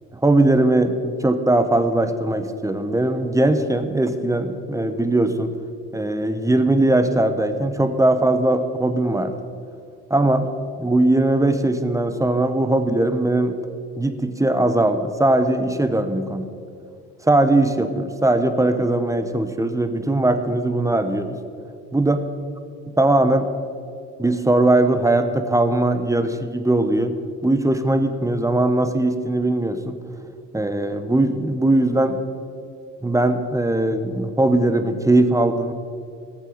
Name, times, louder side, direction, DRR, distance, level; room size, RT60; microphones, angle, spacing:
voice 1, 0.1-5.5 5.9-9.4 10.1-10.5 10.8-13.6 14.0-16.5 17.2-21.4 21.9-22.3 22.9-23.5 24.2-27.2 27.4-30.0 30.5-32.2 33.0-35.7, right 2 dB, 10° right, 9 dB, 1.0 m, -20 dB
18.0 x 7.4 x 5.1 m, 2.3 s
cardioid pair, 90°, 30 cm